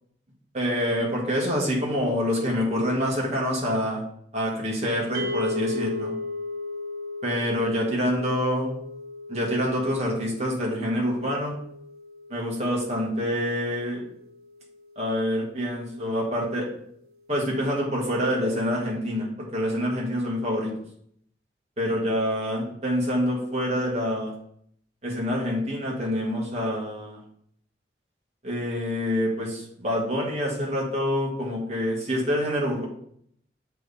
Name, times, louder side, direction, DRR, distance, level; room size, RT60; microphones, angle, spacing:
voice 1, 0.5-4.0 4.3-6.1 7.2-8.7 9.3-11.6 12.3-14.0 14.9-16.7 17.3-20.7 21.8-24.3 25.0-27.2 28.4-32.9, equal, 35° right, -2 dB, 1.7 m, -26 dB
sound 1, 5.1-15.4, left 3 dB, 55° right, 0.4 m, -37 dB
7.4 x 3.5 x 4.2 m, 0.68 s
head